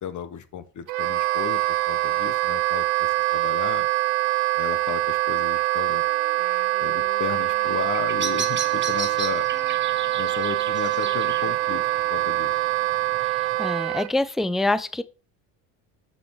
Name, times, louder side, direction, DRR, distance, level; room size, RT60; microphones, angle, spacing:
voice 1, 0.0-3.9 4.6-6.0 6.8-9.5 10.2-12.5, left 8 dB, 45° left, 1.3 m, -34 dB
Wind instrument woodwind instrument, 0.9-14.1, right 18 dB, 85° right, 0.9 m, -24 dB
Wind instrument woodwind instrument 2, 6.0-12.7, left 2 dB, 65° left, 4.8 m, -46 dB
Bird vocalization bird call bird song, 7.7-13.6, right 6 dB, 25° right, 1.2 m, -36 dB
voice 2, 13.3-15.0, left 2 dB, ahead, 0.4 m, -26 dB
7.2 x 6.9 x 4.7 m
supercardioid pair, 90°, 42 cm